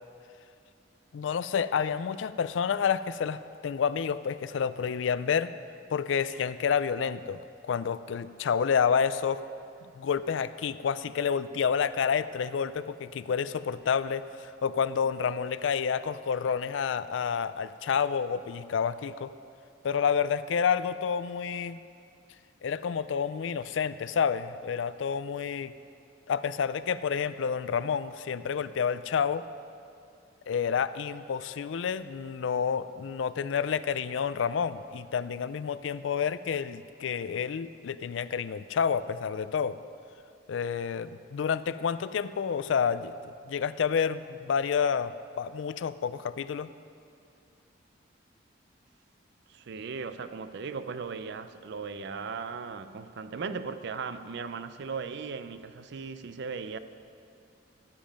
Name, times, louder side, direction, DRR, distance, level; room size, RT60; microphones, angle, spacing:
voice 1, 1.1-5.5 5.9-9.4 10.0-19.3 19.8-21.8 22.6-25.7 26.3-29.4 30.5-39.8 40.5-46.7, left 7 dB, 70° left, 0.4 m, -29 dB
voice 2, 49.5-56.8, right 5 dB, 65° right, 0.5 m, -37 dB
14.5 x 7.3 x 5.2 m
head